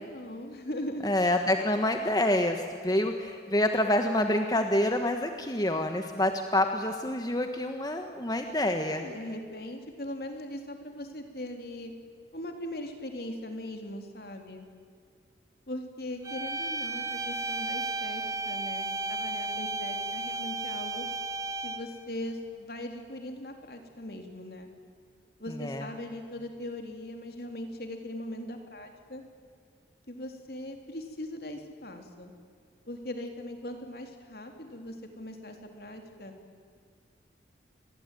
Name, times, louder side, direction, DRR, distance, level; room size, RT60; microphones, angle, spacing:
voice 1, 0.0-1.2 8.9-11.9 12.3-14.7 15.7-21.1 21.6-24.7 25.4-29.2 30.1-32.3 32.9-36.3, left 1 dB, 55° left, 5 dB, 3.6 m, -40 dB
voice 2, 1.0-9.0 25.6-25.9, left 1 dB, 20° left, 6 dB, 1.4 m, -27 dB
sound 1, 16.2-22.0, right 2 dB, 20° right, 2.3 m, -34 dB
28.5 x 21.5 x 9.3 m, 2.2 s
head